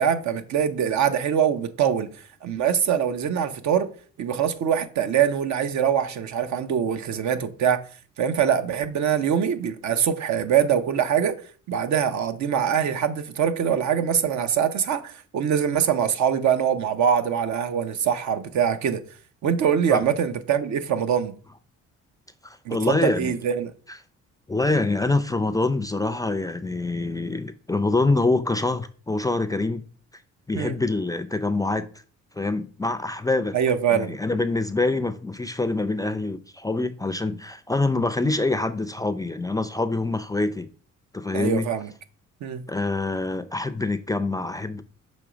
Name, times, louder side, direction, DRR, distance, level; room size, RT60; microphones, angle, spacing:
voice 1, 0.0-2.1 2.4-3.9 4.2-7.8 8.2-11.3 11.7-19.0 19.4-21.3 22.7-23.7 30.5-30.7 33.5-34.2 41.3-41.9 42.4-42.6, right 8 dB, 70° right, 0.8 m, -23 dB
voice 2, 22.4-23.3 24.5-29.8 30.5-31.9 32.4-33.6 33.9-40.7 41.1-41.7 42.7-44.8, left 2 dB, 10° left, 0.4 m, -25 dB
6.2 x 3.0 x 5.0 m
cardioid pair, 90°, 30 cm